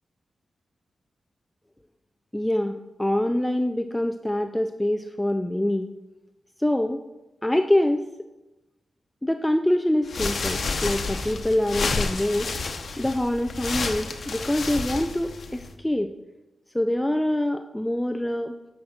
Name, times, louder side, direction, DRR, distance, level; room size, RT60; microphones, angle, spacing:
voice 1, 2.3-5.9 6.6-7.0 7.4-8.0 9.2-12.5 13.0-16.1 16.7-18.5, left 1 dB, 10° left, 7 dB, 0.4 m, -25 dB
sound 1, 10.0-15.7, left 4 dB, 60° left, 0.9 m, -30 dB
8.8 x 5.7 x 6.1 m, 1.0 s
wide cardioid pair, 100°, 0 cm